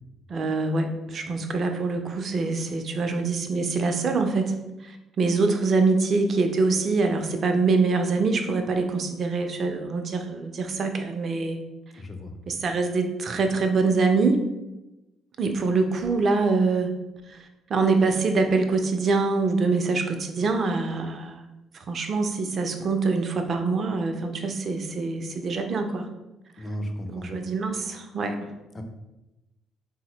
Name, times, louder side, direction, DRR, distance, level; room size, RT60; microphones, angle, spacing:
voice 1, 0.3-4.6 4.8-11.6 12.5-14.4 15.4-16.9 17.3-21.4 21.7-26.1 27.1-28.5, right 3 dB, 50° right, 6 dB, 0.4 m, -24 dB
voice 2, 12.0-12.4 26.6-27.3 28.7-28.8, equal, 30° left, 6 dB, 0.5 m, -34 dB
3.7 x 2.0 x 2.9 m, 0.99 s
hypercardioid pair, 50°, 0 cm